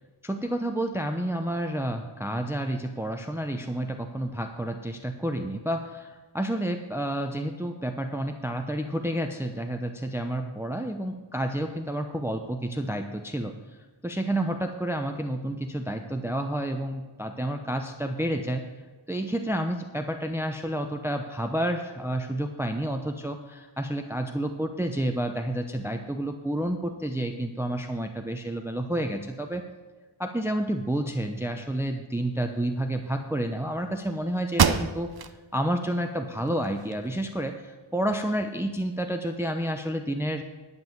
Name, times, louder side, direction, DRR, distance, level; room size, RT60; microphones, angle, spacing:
voice 1, 0.2-18.7 19.1-29.6 30.2-35.1 35.5-40.4, right 1 dB, 5° right, 5 dB, 0.7 m, -30 dB
sound 1, 34.0-34.1 34.5-35.4 35.8-35.9 36.5-37.4, right 6 dB, 50° right, 0.7 m, -26 dB
10.5 x 5.4 x 7.8 m, 1.3 s
wide cardioid pair, 50°, 49 cm